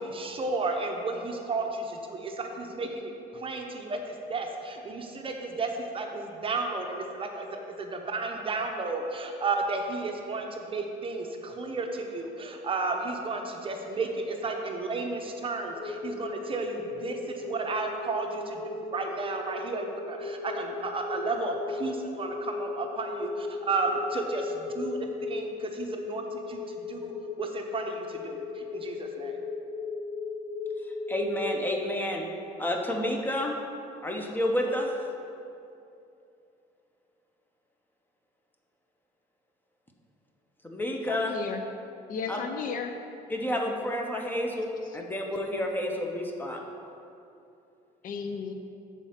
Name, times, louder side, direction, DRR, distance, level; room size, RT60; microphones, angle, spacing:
voice 1, 0.0-27.1 27.4-29.4, right 3 dB, 30° right, 3 dB, 0.7 m, -33 dB
sound 1, 15.7-31.7, left 3 dB, 90° left, 0.8 m, -36 dB
voice 2, 31.1-32.3 32.6-33.6 34.0-34.9 40.6-41.4 42.3-42.4 43.3-46.6, left 1 dB, 10° left, 2 dB, 0.8 m, -30 dB
voice 3, 41.1-41.6 42.1-42.9 48.0-48.5, left 6 dB, 55° left, 6 dB, 0.5 m, -34 dB
6.9 x 4.2 x 5.7 m, 2.7 s
cardioid pair, 110°, 17 cm